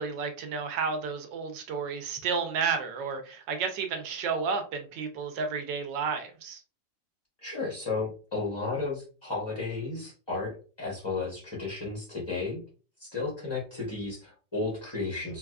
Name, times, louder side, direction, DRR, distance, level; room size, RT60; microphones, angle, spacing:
voice 1, 0.0-6.6, right 5 dB, 75° right, 1.3 m, -31 dB
voice 2, 7.4-12.6 13.0-15.4, left 3 dB, 30° left, 0.4 m, -33 dB
4.0 x 2.3 x 2.3 m
omnidirectional pair, 2.1 m